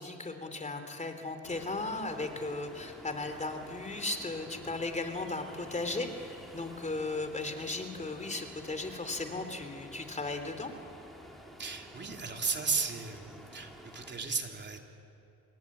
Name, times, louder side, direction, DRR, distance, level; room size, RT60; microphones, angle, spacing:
voice 1, 0.0-10.7, left 3 dB, 25° left, 7 dB, 3.3 m, -36 dB
Ocean, 1.4-14.1, equal, ahead, 5.3 m, -50 dB
voice 2, 11.6-14.8, right 4 dB, 35° right, 2 dB, 3.3 m, -35 dB
28.0 x 21.0 x 8.7 m, 2.6 s
cardioid pair, 90°, 30 cm